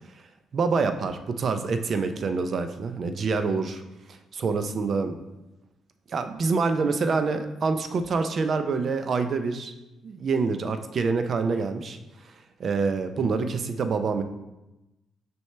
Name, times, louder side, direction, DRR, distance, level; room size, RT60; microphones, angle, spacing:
voice 1, 0.5-3.8 4.1-5.2 6.1-9.7 10.0-12.0 12.6-14.2, right 4 dB, 50° right, 9 dB, 0.5 m, -26 dB
6.3 x 4.5 x 3.3 m, 0.99 s
cardioid pair, 90°, 0 cm